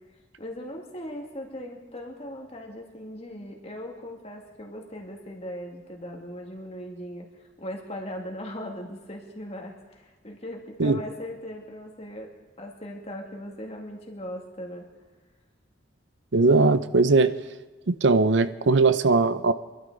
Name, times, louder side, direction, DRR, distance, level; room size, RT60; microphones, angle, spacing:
voice 1, 0.4-12.3 12.6-14.9, equal, 35° left, 0 dB, 2.3 m, -39 dB
voice 2, 16.3-17.3 17.9-19.5, right 3 dB, 70° right, 12 dB, 0.6 m, -20 dB
25.0 x 12.0 x 4.0 m, 1.3 s
head